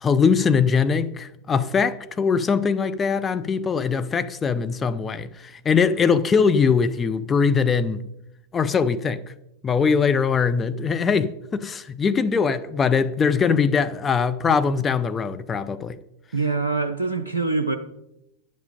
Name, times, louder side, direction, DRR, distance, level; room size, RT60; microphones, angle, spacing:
voice 1, 0.0-8.0 8.5-9.2 9.6-16.0, left 5 dB, 20° left, 0.5 m, -21 dB
voice 2, 16.3-17.8, right 3 dB, 75° right, 0.5 m, -24 dB
10.5 x 7.3 x 5.1 m
figure-of-eight pair, 90°, 0 cm